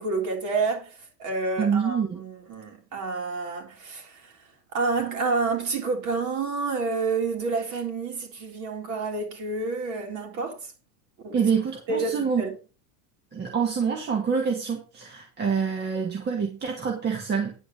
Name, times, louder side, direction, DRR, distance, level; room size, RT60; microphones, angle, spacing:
voice 1, 0.0-4.3 4.7-10.7 11.2-11.4 11.9-12.5, right 4 dB, 35° right, 3.8 m, -29 dB
voice 2, 1.6-2.2 11.3-12.4 13.3-17.5, right 6 dB, 20° right, 1.8 m, -26 dB
10.5 x 4.7 x 6.7 m
supercardioid pair, 150°, 48 cm